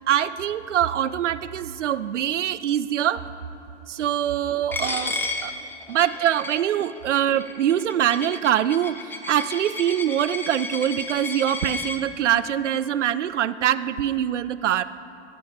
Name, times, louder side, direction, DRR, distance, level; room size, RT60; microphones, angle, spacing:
voice 1, 0.1-3.2 3.9-5.5 5.9-9.0 9.3-14.8, right 10 dB, 80° right, 15 dB, 0.5 m, -24 dB
Coin (dropping), 4.7-12.0, left 3 dB, 5° left, 0.5 m, -33 dB
15.5 x 8.3 x 3.6 m, 2.7 s
figure-of-eight pair, 95°, 36 cm